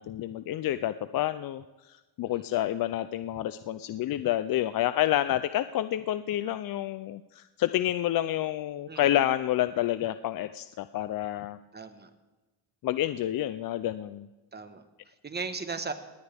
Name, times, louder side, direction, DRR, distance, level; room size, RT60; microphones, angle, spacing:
voice 1, 0.0-11.6 12.8-14.3, left 13 dB, 50° left, 13 dB, 0.5 m, -29 dB
voice 2, 2.3-2.6 8.9-9.2 11.7-12.1 14.5-15.9, right 4 dB, 20° right, 9 dB, 1.3 m, -38 dB
20.5 x 18.0 x 3.5 m, 1.1 s
cardioid pair, 120°, 47 cm